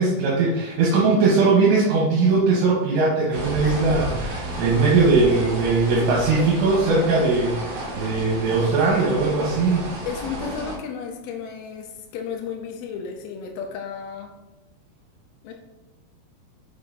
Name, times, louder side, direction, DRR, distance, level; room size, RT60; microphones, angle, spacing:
voice 1, 0.0-9.8, right 3 dB, 80° right, -4 dB, 3.2 m, -20 dB
sound 1, 3.3-10.8, right 1 dB, 60° right, 1.6 m, -32 dB
voice 2, 5.9-6.5 10.1-14.3 15.4-15.5, left 7 dB, 85° left, 2 dB, 2.2 m, -33 dB
6.8 x 5.4 x 2.7 m, 1.0 s
omnidirectional pair, 5.1 m